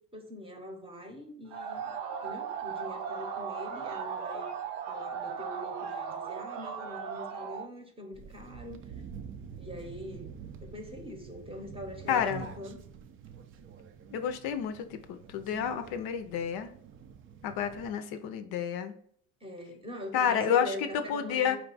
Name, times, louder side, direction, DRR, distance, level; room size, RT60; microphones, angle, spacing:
voice 1, 0.1-1.9 2.2-4.5 4.9-8.8 9.6-12.8 19.4-21.6, left 1 dB, 15° right, 3 dB, 0.7 m, -43 dB
sound 1, 1.5-7.7, right 7 dB, 75° right, 0.7 m, -37 dB
sound 2, 8.1-17.9, right 7 dB, 35° right, 0.4 m, -47 dB
voice 2, 12.1-12.5 14.1-16.7 17.4-18.9 20.1-21.6, left 8 dB, 65° left, 8 dB, 0.5 m, -30 dB
4.3 x 2.3 x 3.9 m, 0.63 s
supercardioid pair, 100°, 41 cm